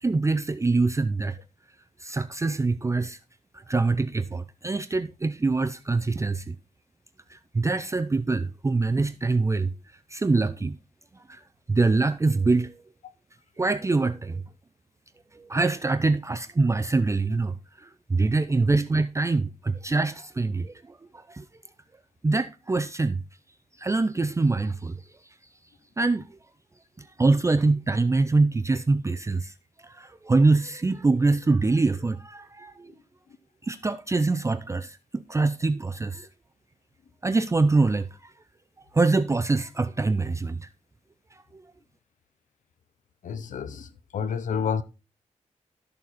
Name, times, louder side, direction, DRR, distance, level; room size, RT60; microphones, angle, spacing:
voice 1, 0.0-1.4 2.0-3.2 3.5-6.6 7.3-9.7 10.1-10.8 11.1-11.4 11.7-12.8 13.6-14.4 15.3-21.4 22.2-23.2 23.8-25.0 26.0-26.3 27.0-29.5 29.8-32.9 33.6-36.3 37.2-38.3 38.9-40.7 41.3-41.6, right 3 dB, 25° right, 0.5 m, -24 dB
voice 2, 43.2-44.8, left 7 dB, 85° left, 0.8 m, -29 dB
13.0 x 6.8 x 4.1 m
cardioid pair, 90°, 13 cm